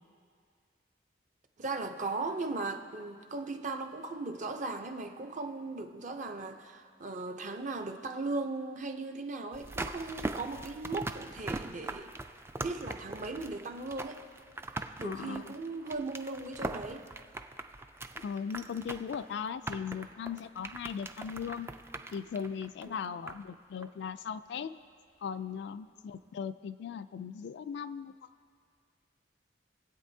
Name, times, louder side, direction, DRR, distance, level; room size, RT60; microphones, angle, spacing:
voice 1, 1.6-12.1 12.6-14.2 15.0-17.1 22.8-23.0, right 3 dB, 45° right, 5 dB, 0.7 m, -37 dB
sound 1, 9.5-23.5 23.8-23.9, right 2 dB, 15° right, 0.3 m, -41 dB
voice 2, 15.0-15.4 18.2-21.7 22.1-24.8 25.2-28.1, left 7 dB, 65° left, 12 dB, 0.3 m, -38 dB
23.0 x 8.2 x 2.7 m, 2.2 s
head